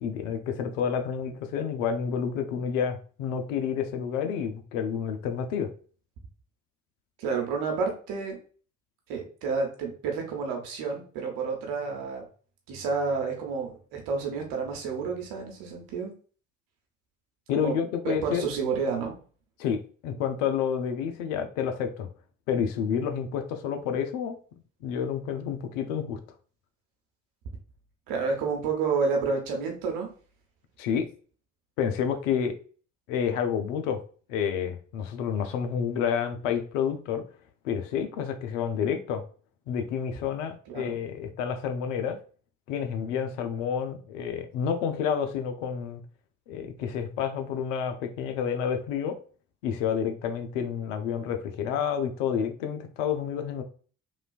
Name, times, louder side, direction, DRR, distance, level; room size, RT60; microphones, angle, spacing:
voice 1, 0.0-5.7 17.5-18.5 19.6-22.1 22.5-24.4 24.8-26.2 30.8-31.1 31.8-32.5 33.1-34.0 34.3-37.2 37.6-39.2 39.7-42.2 42.7-46.0 46.5-49.2 49.6-53.6, left 7 dB, 85° left, 7 dB, 0.5 m, -29 dB
voice 2, 7.2-8.4 9.1-12.2 12.7-16.1 17.5-17.7 18.0-19.1 28.1-30.1 40.7-41.0, right 5 dB, 70° right, 1 dB, 0.9 m, -30 dB
3.1 x 2.3 x 2.3 m, 0.40 s
hypercardioid pair, 50°, 37 cm